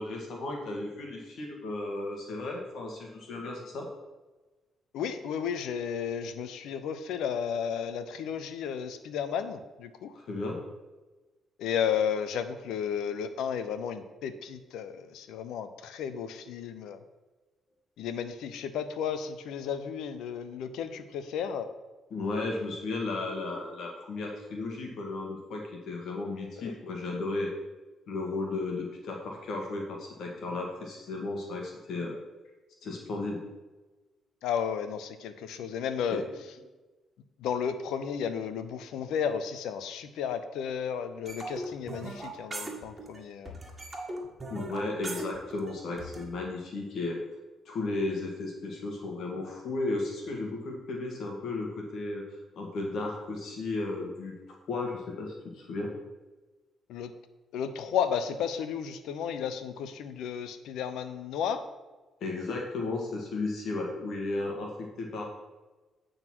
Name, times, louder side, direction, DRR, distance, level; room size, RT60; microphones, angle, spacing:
voice 1, 0.0-3.9 10.1-10.6 22.1-27.5 28.1-32.1 32.8-33.4 36.1-36.2 44.5-47.2 47.6-52.2 52.5-54.3 54.7-55.9 62.2-65.2, left 2 dB, 70° left, 0 dB, 1.5 m, -34 dB
voice 2, 4.9-10.1 11.6-17.0 18.0-21.7 26.6-26.7 34.4-36.3 37.4-43.5 56.9-57.1 57.5-61.6, left 7 dB, 85° left, 11 dB, 0.6 m, -33 dB
sound 1, 41.3-43.2 43.5-46.2, right 2 dB, 20° right, 1.9 m, -39 dB
9.1 x 3.9 x 6.0 m, 1.2 s
cardioid pair, 90°, 0 cm